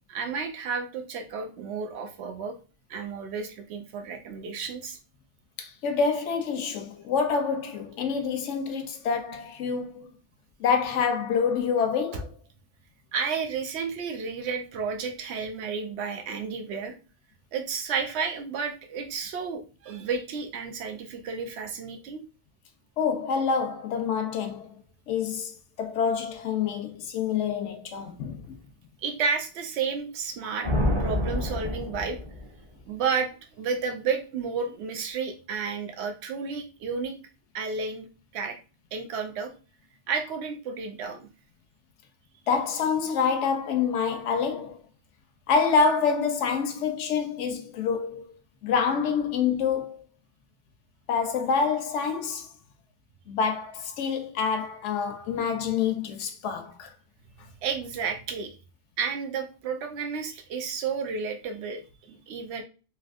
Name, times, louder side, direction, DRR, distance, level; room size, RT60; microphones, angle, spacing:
voice 1, 0.1-2.6 2.9-5.0 12.1-12.2 13.1-17.0 17.5-22.2 29.0-30.7 31.0-32.2 32.9-33.3 33.6-37.1 37.5-38.1 38.3-38.6 38.9-39.5 40.1-41.3 57.6-58.5 59.0-61.8 62.1-62.6, right 5 dB, 70° right, 0.9 m, -31 dB
voice 2, 5.6-10.1 10.6-12.3 23.0-24.8 25.1-28.5 42.5-44.8 45.5-50.0 51.1-52.5 53.3-56.9, left 6 dB, 85° left, 0.9 m, -27 dB
sound 1, 30.6-32.6, left 1 dB, 25° right, 0.9 m, -27 dB
3.3 x 2.7 x 2.4 m
omnidirectional pair, 1.2 m